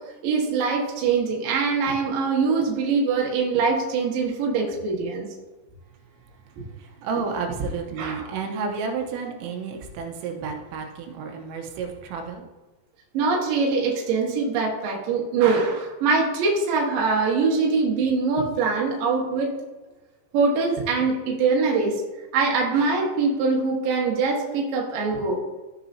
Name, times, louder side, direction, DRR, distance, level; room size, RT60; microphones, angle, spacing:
voice 1, 0.2-5.3 8.0-8.3 13.1-19.5 20.3-22.0 22.3-25.4, right 4 dB, 60° right, -2 dB, 2.5 m, -23 dB
voice 2, 6.1-12.5, right 5 dB, 80° right, 3 dB, 3.6 m, -31 dB
15.0 x 6.8 x 2.8 m, 1.2 s
omnidirectional pair, 6.0 m